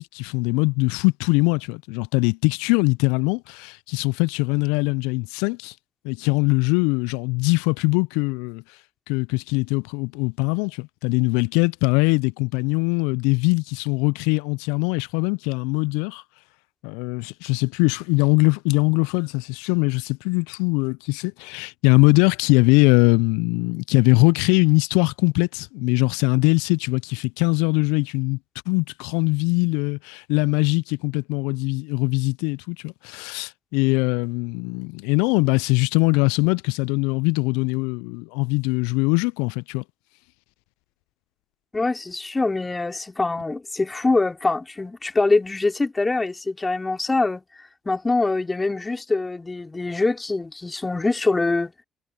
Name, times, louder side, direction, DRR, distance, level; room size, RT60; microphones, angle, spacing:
voice 1, 0.0-5.7 6.0-8.6 9.1-16.2 16.8-28.4 28.7-39.8, left 29 dB, 75° left, 0.8 m, -22 dB
voice 2, 41.7-47.4 47.9-51.7, left 3 dB, 20° left, 3.7 m, -24 dB
figure-of-eight pair, 45°, 0 cm